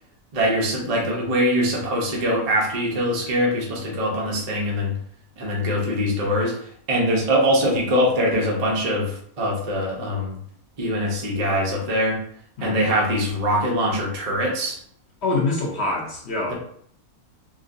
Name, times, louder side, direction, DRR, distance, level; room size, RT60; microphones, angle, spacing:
voice 1, 0.3-4.9 5.4-10.3 10.8-12.2 12.6-14.8, equal, 40° right, -2 dB, 0.5 m, -23 dB
voice 2, 15.2-16.5, left 3 dB, 50° left, -2 dB, 0.9 m, -25 dB
3.6 x 2.7 x 2.6 m, 0.63 s
omnidirectional pair, 1.7 m